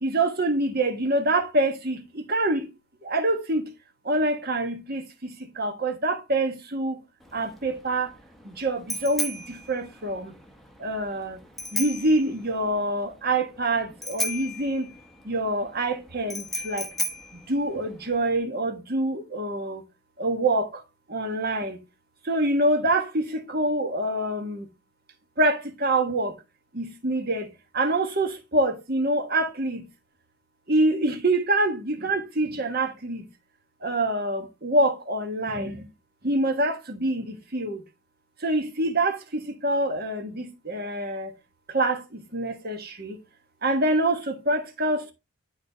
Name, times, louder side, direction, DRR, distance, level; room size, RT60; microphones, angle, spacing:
voice 1, 0.0-2.7 3.0-3.7 4.0-7.0 7.3-8.1 8.4-10.3 10.8-11.4 11.7-14.9 15.2-16.9 17.3-19.8 20.2-20.8 21.1-21.8 22.2-24.7 25.4-26.3 26.7-27.5 27.7-29.8 30.7-33.2 33.8-35.8 36.2-37.8 38.4-41.3 41.7-43.2 43.6-45.1, right 2 dB, 45° right, 1.5 m, -26 dB
Bicycle bell, 7.2-18.4, left 1 dB, ahead, 1.0 m, -35 dB
12.0 x 4.2 x 3.0 m
head